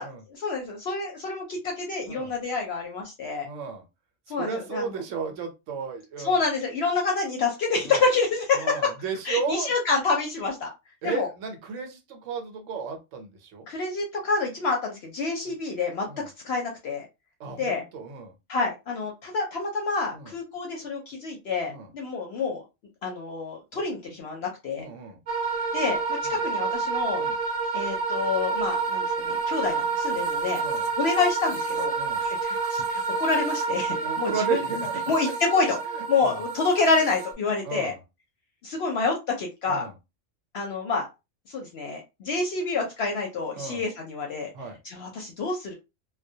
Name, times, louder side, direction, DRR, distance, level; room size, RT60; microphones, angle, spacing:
voice 1, 0.3-3.5 4.3-4.8 6.2-8.8 9.3-10.7 11.0-11.3 13.7-16.0 16.4-17.1 17.6-17.8 18.5-22.6 23.0-24.8 25.7-27.2 27.7-30.6 31.0-31.9 32.2-32.8 33.2-34.3 35.1-35.8 36.1-37.9 38.6-39.9 40.5-41.1 41.5-44.5 44.8-45.7, left 4 dB, 65° left, 1 dB, 0.7 m, -27 dB
voice 2, 3.4-3.9 4.4-6.4 7.8-8.0 8.5-9.7 11.0-13.7 15.4-15.6 16.0-16.3 17.4-18.3 20.1-20.4 21.7-21.9 24.8-25.2 26.2-26.4 27.2-27.4 30.6-30.9 32.0-32.2 34.0-35.3 35.9-36.4 37.6-38.0 39.7-39.9 43.6-43.8 44.5-44.8, right 5 dB, 75° right, 5 dB, 1.0 m, -34 dB
sound 1, 25.3-37.3, right 4 dB, 45° right, 0.5 m, -28 dB
2.2 x 2.1 x 2.6 m, 0.25 s
omnidirectional pair, 1.3 m